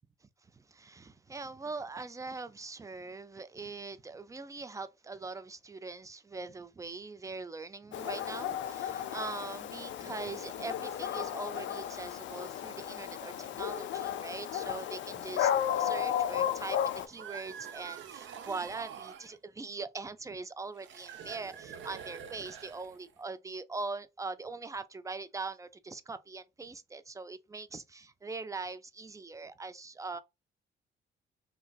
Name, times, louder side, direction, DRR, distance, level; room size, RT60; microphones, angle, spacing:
voice 1, 0.5-30.2, right 3 dB, 15° right, 0.3 m, -42 dB
Dog, 7.9-17.1, left 9 dB, 70° left, 0.4 m, -34 dB
sound 1, 16.9-19.4 20.7-23.2, right 8 dB, 70° right, 0.6 m, -46 dB
3.0 x 2.5 x 2.3 m
cardioid pair, 90°, 20 cm